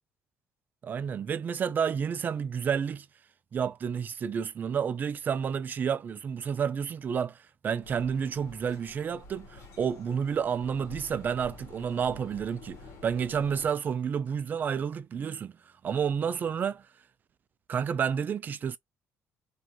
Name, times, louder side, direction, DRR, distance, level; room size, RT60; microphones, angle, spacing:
voice 1, 0.8-3.1 3.5-7.4 7.6-15.5 15.8-16.8 17.7-18.8, right 7 dB, 35° right, 0.3 m, -30 dB
sound 1, 7.8-13.7, left 2 dB, 60° left, 1.0 m, -48 dB
2.5 x 2.3 x 2.8 m
cardioid pair, 135°, 6 cm